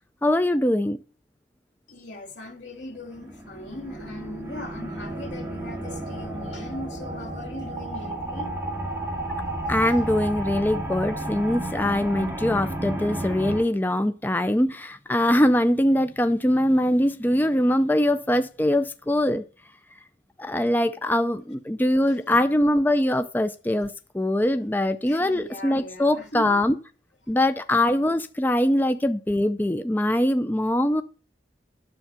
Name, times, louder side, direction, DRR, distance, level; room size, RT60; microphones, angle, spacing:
voice 1, 0.2-1.0 9.7-19.4 20.4-26.7 27.3-31.0, left 1 dB, 10° left, 0.4 m, -22 dB
voice 2, 1.9-8.5 25.0-26.6, left 1 dB, 85° left, 2.7 m, -39 dB
sound 1, 2.9-13.6, right 1 dB, 15° right, 2.2 m, -32 dB
10.0 x 7.5 x 5.7 m
head